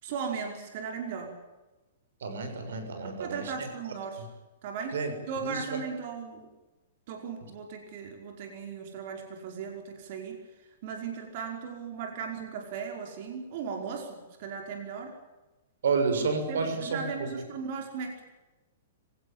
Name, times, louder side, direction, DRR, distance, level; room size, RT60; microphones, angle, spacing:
voice 1, 0.0-1.3 3.0-4.3 4.6-5.0 5.3-6.5 7.1-10.4 10.8-15.1 16.2-18.2, right 6 dB, 45° right, 3 dB, 5.3 m, -37 dB
voice 2, 2.2-3.9 4.9-5.1 5.5-5.8 15.8-17.3, right 4 dB, 80° right, 8 dB, 6.7 m, -30 dB
25.5 x 17.5 x 8.9 m, 1.1 s
hypercardioid pair, 155°, 0 cm